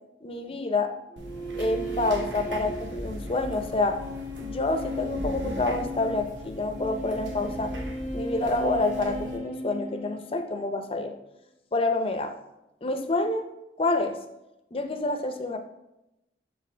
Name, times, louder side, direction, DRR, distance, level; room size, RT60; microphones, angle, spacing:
voice 1, 0.2-0.9 1.4-4.0 4.4-7.7 8.1-11.2 11.7-12.3 12.8-13.5 13.8-14.2 14.7-15.6, left 2 dB, 30° left, 7 dB, 0.5 m, -28 dB
sound 1, 1.1-10.7, equal, 45° right, 2.0 m, -37 dB
sound 2, 1.2-9.4, equal, 80° right, 1.0 m, -39 dB
7.1 x 5.2 x 3.3 m, 0.90 s
head